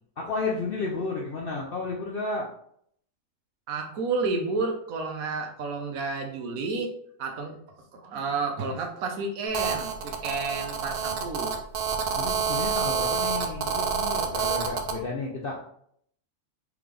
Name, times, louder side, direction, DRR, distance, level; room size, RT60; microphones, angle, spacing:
voice 1, 0.2-2.5 12.1-15.6, left 3 dB, 60° left, -1 dB, 0.5 m, -32 dB
voice 2, 3.7-6.9 7.2-7.6 7.9-11.6, right 3 dB, 75° right, 3 dB, 1.2 m, -31 dB
Telephone, 9.5-15.0, right 6 dB, 60° right, 0.6 m, -28 dB
3.8 x 3.4 x 3.2 m, 0.68 s
omnidirectional pair, 1.5 m